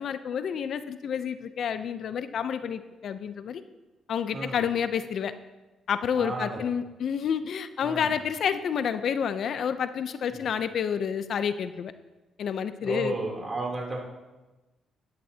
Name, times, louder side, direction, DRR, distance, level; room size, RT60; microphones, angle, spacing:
voice 1, 0.0-3.6 4.1-5.3 5.9-11.9 12.4-13.1, left 7 dB, 60° left, 11 dB, 0.6 m, -29 dB
voice 2, 6.2-6.6 7.8-8.1 10.3-10.4 12.8-14.0, right 2 dB, 30° right, -1 dB, 3.1 m, -32 dB
14.5 x 11.0 x 2.8 m, 1.1 s
cardioid pair, 90°, 0 cm